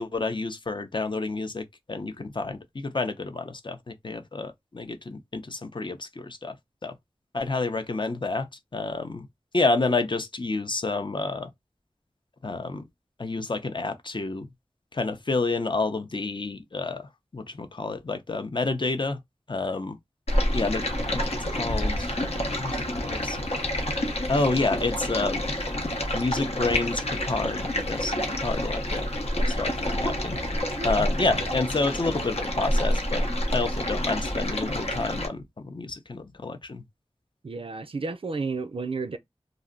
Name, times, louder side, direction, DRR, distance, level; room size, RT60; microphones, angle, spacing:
voice 1, 0.0-6.6 6.8-7.0 7.3-9.3 9.5-11.5 12.4-12.8 13.2-14.5 14.9-19.2 19.5-20.0 20.5-21.2 21.5-23.4 24.3-25.6 26.1-29.1 29.5-30.5 30.8-33.3 33.5-36.8, left 3 dB, 50° left, 0.5 m, -29 dB
Stream, 20.3-35.3, left 1 dB, 75° left, 0.8 m, -28 dB
voice 2, 37.4-39.2, right 4 dB, 55° right, 0.4 m, -32 dB
2.5 x 2.0 x 3.7 m
wide cardioid pair, 60°, 11 cm